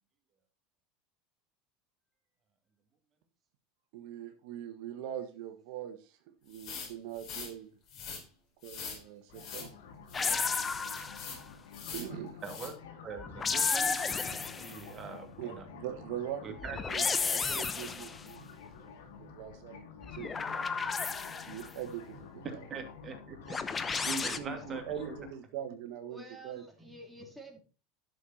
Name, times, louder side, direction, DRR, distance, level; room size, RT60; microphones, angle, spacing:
voice 1, 3.9-6.1 6.4-7.7 8.6-9.7 11.9-12.4 15.4-20.7 21.5-22.6 24.0-26.6, right 9 dB, 65° right, 1.5 m, -42 dB
sound 1, 6.5-7.5 7.9-8.2 8.6-9.0 9.3-9.7 10.1-10.4 10.8-11.4 11.7-12.1 12.4-12.7, left 6 dB, 55° left, 4.1 m, -43 dB
sound 2, 9.3-25.3, left 6 dB, 80° left, 2.2 m, -50 dB
sound 3, 10.1-11.4 13.2-14.8 16.6-18.2 20.0-21.7 23.5-24.4, left 5 dB, 20° left, 0.9 m, -32 dB
voice 2, 12.4-12.7 13.0-15.7 16.4-16.8 22.4-23.9 24.2-25.2, right 5 dB, 30° right, 2.5 m, -43 dB
voice 3, 26.1-27.6, right 1 dB, ahead, 3.1 m, -49 dB
11.0 x 6.5 x 4.2 m
supercardioid pair, 115°, 0 cm